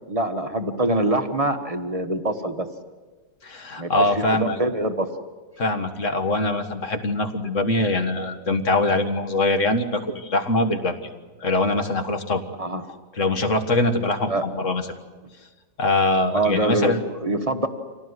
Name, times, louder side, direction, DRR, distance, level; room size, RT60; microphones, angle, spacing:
voice 1, 0.0-2.7 3.8-5.1 12.6-12.8 14.3-14.4 16.3-16.9 17.2-17.7, right 1 dB, 20° right, 7 dB, 1.3 m, -24 dB
voice 2, 3.4-4.6 5.6-11.0 11.4-12.4 13.1-14.9 15.8-17.0, left 2 dB, 45° left, 7 dB, 1.9 m, -23 dB
26.0 x 17.5 x 9.8 m, 1.3 s
omnidirectional pair, 1.9 m